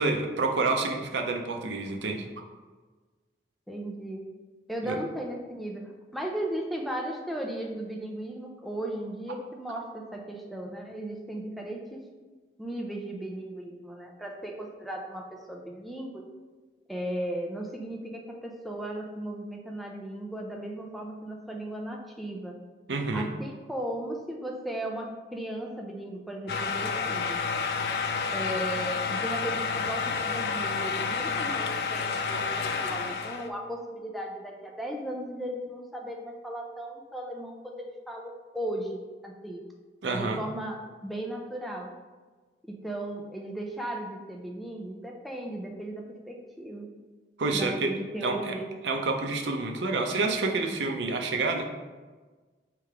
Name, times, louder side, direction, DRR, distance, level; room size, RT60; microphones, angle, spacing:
voice 1, 0.0-2.3 4.8-5.0 22.9-23.3 40.0-40.4 47.4-47.9 48.2-48.5 48.8-51.7, right 3 dB, 85° right, 3 dB, 0.6 m, -28 dB
voice 2, 3.7-4.2 4.7-12.0 12.6-16.2 16.9-22.6 23.1-27.4 28.3-39.6 40.1-41.9 42.6-46.9 47.5-48.7, right 1 dB, ahead, 0 dB, 0.4 m, -36 dB
sound 1, 26.5-33.5, left 5 dB, 60° left, 0.3 m, -30 dB
3.3 x 3.2 x 4.9 m, 1.3 s
head